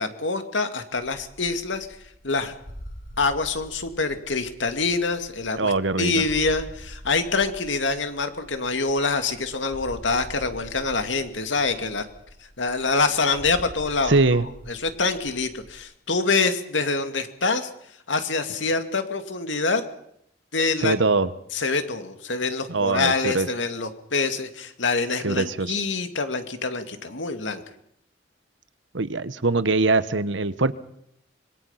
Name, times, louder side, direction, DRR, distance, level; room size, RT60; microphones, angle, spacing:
voice 1, 0.0-1.9 2.2-2.5 3.2-5.7 6.0-12.1 12.6-14.4 14.7-17.7 18.1-19.8 20.5-20.9 21.5-27.6, left 4 dB, 80° left, 8 dB, 2.4 m, -25 dB
sound 1, 1.0-15.8, equal, 55° left, 4.9 m, -45 dB
voice 2, 5.6-6.2 14.1-14.4 20.8-21.3 22.7-23.5 25.2-25.7 28.9-30.7, right 3 dB, 75° right, 14 dB, 1.2 m, -22 dB
26.0 x 22.0 x 5.8 m, 0.74 s
head